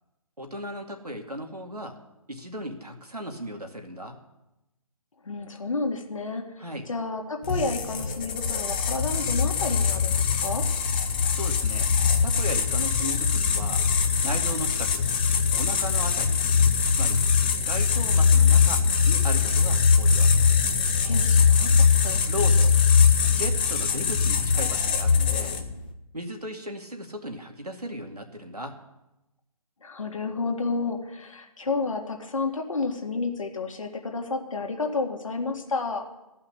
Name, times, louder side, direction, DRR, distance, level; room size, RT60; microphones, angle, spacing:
voice 1, 0.4-2.0 2.3-4.2 6.6-6.9 11.3-11.9 12.2-13.8 14.2-15.0 15.5-16.4 16.9-17.2 17.6-18.8 19.1-20.3 22.3-22.7 23.3-25.6 26.1-28.8, equal, 90° right, 3 dB, 2.1 m, -36 dB
voice 2, 5.2-10.6 21.0-22.3 29.8-36.1, left 3 dB, 60° left, 3 dB, 1.9 m, -31 dB
sound 1, 7.4-25.8, left 6 dB, 15° left, 0.5 m, -22 dB
14.5 x 5.7 x 9.8 m, 0.96 s
figure-of-eight pair, 145°, 19 cm